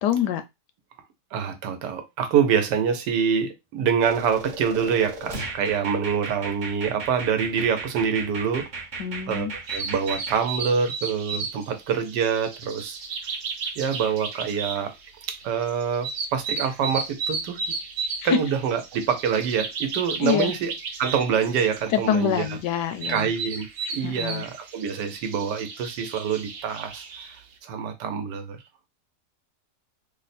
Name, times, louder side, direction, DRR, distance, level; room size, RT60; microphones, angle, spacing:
voice 1, 0.0-0.4 9.0-9.5 18.3-18.4 20.2-20.5 21.9-23.3 24.0-24.5, left 9 dB, 85° left, 1.2 m, -25 dB
voice 2, 1.3-8.7 9.3-13.0 13.8-14.9 15.3-17.6 18.2-20.7 21.0-22.6 23.1-23.7 23.9-27.0 27.6-28.6, right 7 dB, 85° right, 1.3 m, -25 dB
sound 1, 4.0-10.4, right 3 dB, 40° right, 0.7 m, -36 dB
sound 2, 9.6-27.4, right 5 dB, 65° right, 1.1 m, -34 dB
3.2 x 2.1 x 4.1 m
omnidirectional pair, 1.8 m